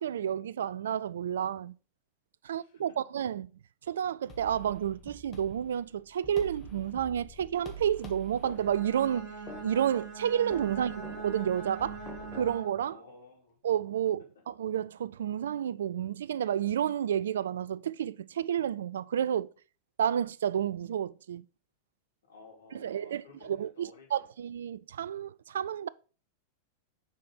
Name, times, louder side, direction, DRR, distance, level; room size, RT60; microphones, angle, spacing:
voice 1, 0.0-1.7 2.4-3.5 3.9-9.3 9.6-10.9 11.2-12.0 12.3-13.0 13.6-19.5 20.0-21.4 22.7-25.9, right 9 dB, 65° right, 0.3 m, -30 dB
voice 2, 2.5-3.0 10.9-11.0 12.9-13.6 22.2-24.3, left 4 dB, 65° left, 2.7 m, -55 dB
sound 1, 4.3-12.6, equal, 25° left, 1.6 m, -47 dB
Bowed string instrument, 8.5-13.0, right 5 dB, 35° right, 2.2 m, -42 dB
7.4 x 4.3 x 5.2 m
figure-of-eight pair, 90°, 0 cm